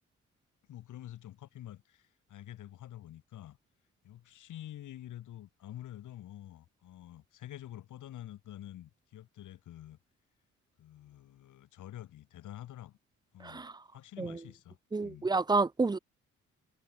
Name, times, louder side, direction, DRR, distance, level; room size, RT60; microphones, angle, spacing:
voice 1, 0.7-3.6 4.0-10.0 10.8-13.0 13.3-14.8 15.0-15.3, left 12 dB, 80° left, 4.4 m, -48 dB
voice 2, 14.9-16.0, right 3 dB, 15° right, 0.5 m, -29 dB
cardioid pair, 75°, 30 cm